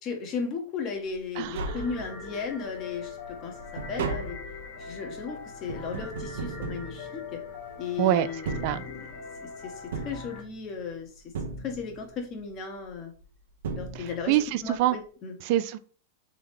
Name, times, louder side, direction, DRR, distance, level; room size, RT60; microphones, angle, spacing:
voice 1, 0.0-3.6 3.9-4.4 4.8-7.4 7.8-11.1 11.6-13.1 13.7-14.4 14.6-15.3, left 5 dB, 40° left, 3 dB, 1.2 m, -36 dB
Tap, 1.1-1.2 1.4-2.5 2.9-7.7 8.3-9.4 9.9-10.9 11.3-12.2 13.2-13.3 13.6-14.5 14.7-14.8, right 4 dB, 80° right, 0.8 m, -37 dB
voice 2, 1.4-1.8 8.0-8.3 8.6-8.8 13.9-15.0 15.4-15.8, right 13 dB, 55° right, 14 dB, 0.3 m, -25 dB
sound 1, 1.7-10.4, left 4 dB, 65° left, 1.2 m, -42 dB
3.7 x 3.1 x 3.4 m, 0.42 s
hypercardioid pair, 125°, 0 cm